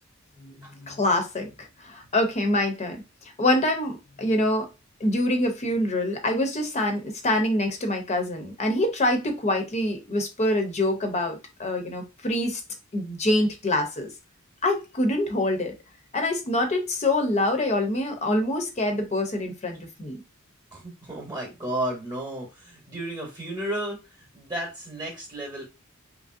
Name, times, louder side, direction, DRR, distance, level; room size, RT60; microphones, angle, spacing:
voice 1, 0.4-3.0 3.4-4.7 5.0-12.6 12.9-14.1 14.6-15.7 16.1-20.2, left 1 dB, 30° left, 0.6 m, -25 dB
voice 2, 20.7-24.0 24.3-25.6, right 1 dB, 20° right, 0.9 m, -33 dB
2.9 x 2.6 x 2.4 m
head